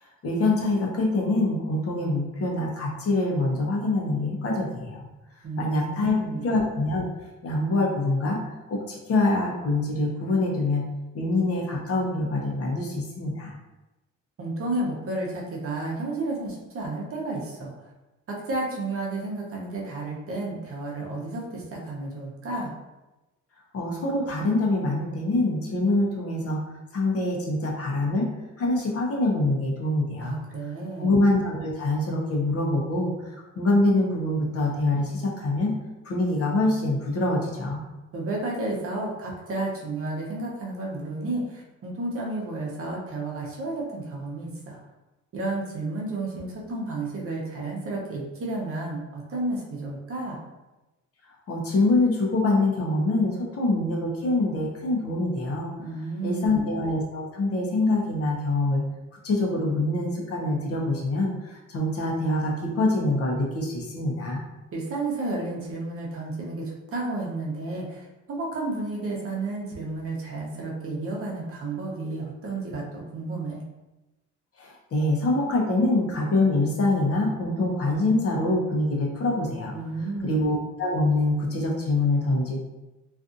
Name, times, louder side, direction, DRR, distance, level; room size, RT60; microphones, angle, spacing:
voice 1, 0.2-5.1 5.6-7.1 7.4-8.4 8.7-10.8 11.1-13.5 23.7-26.6 26.9-28.3 28.6-30.4 31.0-35.7 36.0-37.8 51.5-55.7 56.2-58.8 59.2-64.4 74.6-79.7 80.2-82.6, left 2 dB, 50° left, -1 dB, 0.7 m, -25 dB
voice 2, 5.4-6.4 14.4-17.7 18.3-22.7 30.2-31.1 38.1-44.8 45.3-50.4 55.8-56.7 64.7-73.6 79.7-80.4, right 2 dB, 50° right, -3 dB, 0.8 m, -32 dB
2.5 x 2.5 x 2.5 m, 1.0 s
cardioid pair, 90°, 30 cm